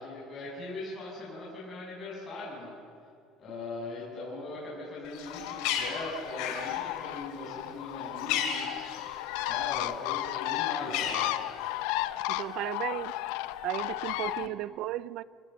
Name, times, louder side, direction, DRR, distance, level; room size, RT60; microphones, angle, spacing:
voice 1, 0.0-2.7 3.4-8.9 9.4-11.3 14.4-14.5, left 2 dB, 30° left, 7.4 m, -40 dB
Bird, 5.1-9.7 10.0-11.9, left 8 dB, 75° left, 3.8 m, -35 dB
Bird 2, 5.3-14.5, left 16 dB, 90° left, 0.7 m, -34 dB
voice 2, 12.3-13.1 13.6-15.2, right 14 dB, 55° right, 0.5 m, -34 dB
28.0 x 19.0 x 7.9 m
cardioid pair, 165°, 0 cm